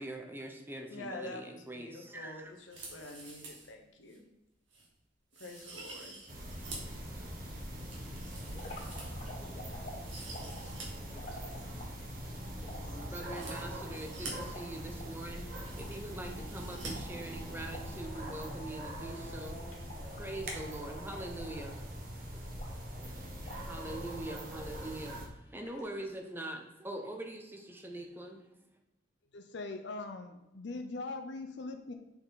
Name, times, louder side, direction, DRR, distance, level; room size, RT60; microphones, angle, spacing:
voice 1, 0.0-2.5 12.9-15.5 15.8-19.6 20.2-21.8 23.0-28.5, right 1 dB, 10° right, 3 dB, 0.7 m, -43 dB
voice 2, 0.9-4.3 5.4-6.2, left 2 dB, 90° left, 3 dB, 0.9 m, -47 dB
sound 1, 2.6-3.7 4.1-4.2 4.7-4.9 5.3-7.0 7.4-9.5 9.9-10.9 11.1-11.2 13.2-14.3 15.1-15.2 15.4-16.1 16.4-16.9 17.2-17.3, right 3 dB, 85° right, 2.0 m, -48 dB
sound 2, 6.3-25.3, equal, 50° right, 1.4 m, -42 dB
sound 3, 8.5-12.1 12.6-15.1 15.5-15.6 15.8-18.7 19.0-19.2 19.6-22.1 22.6-23.1 23.4-24.1 24.6-25.2 25.6-26.1, left 1 dB, 40° left, 2.0 m, -50 dB
voice 3, 29.3-31.9, left 3 dB, 65° left, 6 dB, 0.5 m, -41 dB
6.9 x 4.4 x 3.9 m, 0.98 s
head